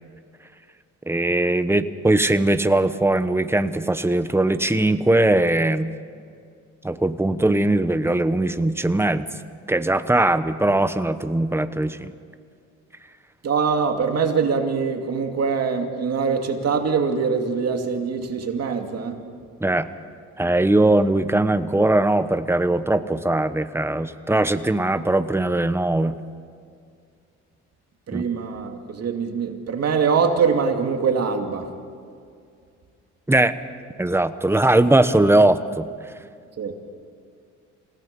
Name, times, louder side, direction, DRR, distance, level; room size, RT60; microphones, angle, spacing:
voice 1, 1.1-5.9 6.8-9.3 9.7-12.1 19.6-19.9 20.4-26.2 28.1-28.2 33.3-33.5 34.0-35.9, right 2 dB, 10° right, 11 dB, 1.0 m, -20 dB
voice 2, 13.4-19.2 28.1-31.7 36.6-36.7, right 5 dB, 55° right, 4 dB, 2.6 m, -23 dB
28.0 x 17.5 x 5.4 m, 2.3 s
cardioid pair, 90°, 30 cm